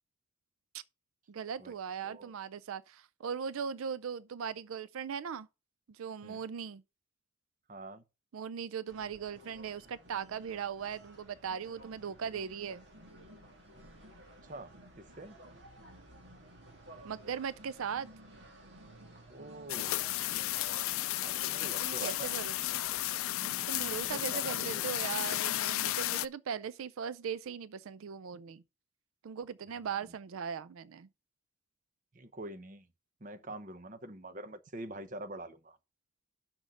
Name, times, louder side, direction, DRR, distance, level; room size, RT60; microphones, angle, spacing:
voice 1, 1.3-5.5 5.9-6.8 8.3-12.9 17.0-18.1 21.8-22.5 23.7-28.6 29.2-31.1, right 7 dB, 85° right, 0.4 m, -39 dB
voice 2, 7.7-8.0 14.4-15.4 19.3-20.1 21.2-22.4 24.0-24.9 32.1-32.9 33.2-35.8, right 1 dB, 40° right, 0.8 m, -45 dB
sound 1, 8.9-24.2, right 1 dB, 55° right, 2.3 m, -55 dB
sound 2, 19.7-26.3, left 15 dB, 85° left, 0.4 m, -33 dB
6.3 x 6.1 x 6.5 m
head